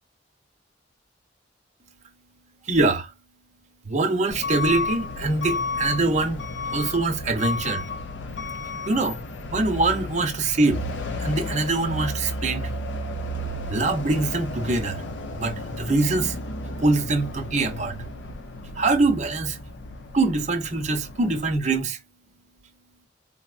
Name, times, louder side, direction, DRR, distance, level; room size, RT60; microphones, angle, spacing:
voice 1, 2.7-3.1 3.9-6.4 6.7-7.8 8.9-9.2 9.5-10.8 11.2-12.7 13.7-15.0 15.3-16.4 16.8-18.0 18.8-19.6 20.1-22.0, right 3 dB, 40° right, 0.7 m, -23 dB
Truck / Alarm, 4.3-21.5, left 2 dB, 70° left, 0.6 m, -33 dB
4.0 x 2.0 x 2.4 m
head